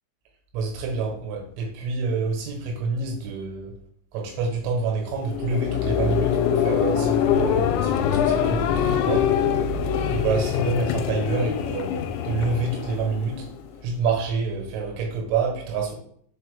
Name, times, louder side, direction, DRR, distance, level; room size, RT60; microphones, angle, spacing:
voice 1, 0.5-3.8 4.1-9.3 10.1-13.5 13.8-16.0, right 4 dB, 85° right, 1 dB, 3.7 m, -27 dB
sound 1, 5.1-13.8, left 9 dB, 85° left, 2.9 m, -24 dB
6.8 x 4.4 x 3.5 m, 0.62 s
omnidirectional pair, 5.4 m